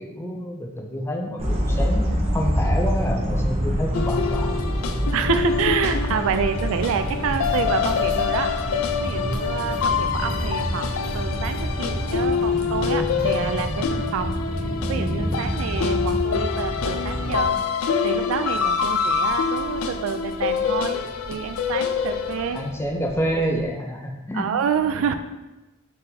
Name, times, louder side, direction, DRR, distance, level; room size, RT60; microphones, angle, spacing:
voice 1, 0.0-4.6 22.5-24.5, equal, 10° left, 1 dB, 0.4 m, -28 dB
sound 1, 1.4-17.5, equal, 30° right, 0.6 m, -27 dB
sound 2, 3.9-22.7, left 6 dB, 85° left, 0.3 m, -26 dB
sound 3, 4.2-23.7, equal, 50° left, 1.4 m, -42 dB
voice 2, 5.1-8.5 9.0-14.4 14.9-17.6 18.0-21.0 21.3-22.6 24.3-25.1, right 7 dB, 75° right, 10 dB, 0.3 m, -28 dB
4.0 x 3.8 x 2.7 m, 1.0 s
head